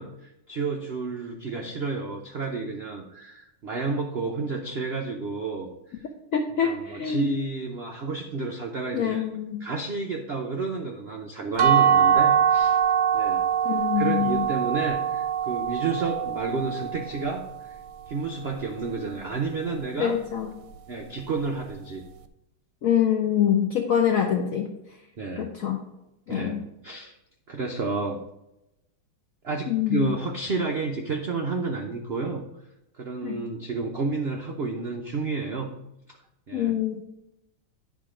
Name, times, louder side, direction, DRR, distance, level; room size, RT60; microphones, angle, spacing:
voice 1, 0.0-5.7 5.9-6.0 6.6-9.2 9.6-12.8 13.1-13.5 14.0-17.8 18.1-20.2 20.9-22.0 25.2-25.5 26.3-27.2 27.5-28.2 29.4-32.4 33.0-35.7 36.5-36.7, right 3 dB, 85° right, 2 dB, 0.5 m, -30 dB
voice 2, 6.3-7.3 8.9-9.6 13.6-14.5 20.0-20.5 22.8-24.7 25.4-25.8 26.3-26.6 29.7-30.1 33.2-33.4 36.5-37.0, left 9 dB, 75° left, 4 dB, 0.7 m, -25 dB
sound 1, 11.6-17.4, right 8 dB, 70° right, 1.1 m, -23 dB
10.0 x 3.6 x 4.9 m, 0.89 s
omnidirectional pair, 2.1 m